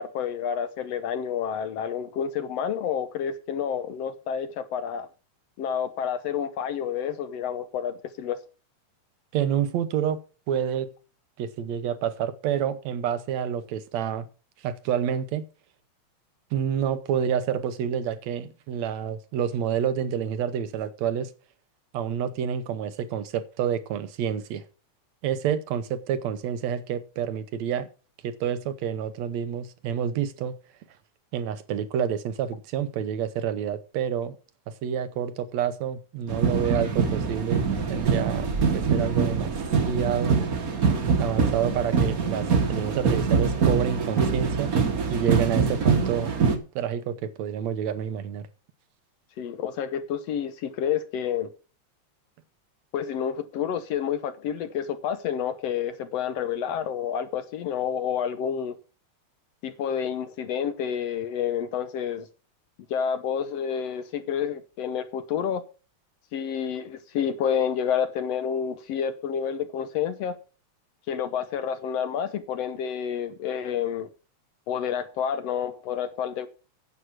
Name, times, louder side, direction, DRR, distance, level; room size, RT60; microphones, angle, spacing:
voice 1, 0.0-5.1 5.6-8.4 49.4-51.5 52.9-58.8 59.6-62.3 62.9-65.6 66.3-70.4 71.1-74.1 74.7-76.5, left 8 dB, 70° left, 1.8 m, -29 dB
voice 2, 9.3-10.2 10.5-10.9 11.4-14.3 14.6-15.5 16.5-21.3 21.9-24.7 25.2-27.9 28.2-30.5 31.3-34.4 34.7-38.5 38.7-39.5 39.8-40.4 41.2-44.7 45.1-46.3 46.8-48.5, right 8 dB, 75° right, 2.1 m, -28 dB
sound 1, 36.3-46.6, right 5 dB, 40° right, 1.4 m, -24 dB
9.8 x 8.1 x 6.0 m
omnidirectional pair, 3.3 m